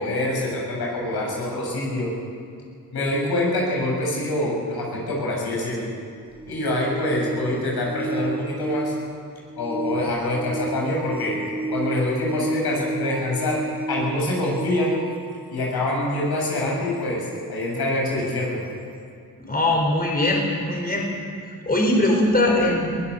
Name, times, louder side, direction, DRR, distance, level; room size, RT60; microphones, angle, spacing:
voice 1, 0.0-2.1 2.9-5.9 6.5-8.9 9.6-11.3 11.7-13.6 13.9-15.0 15.5-18.6, left 1 dB, 80° left, -2 dB, 7.3 m, -25 dB
sound 1, 6.3-16.0 18.4-18.5, right 3 dB, 10° right, 1.6 m, -32 dB
voice 2, 19.4-21.1 21.7-23.0, left 1 dB, 25° left, 0 dB, 4.4 m, -21 dB
22.5 x 16.5 x 7.0 m, 2.3 s
cardioid pair, 80°, 38 cm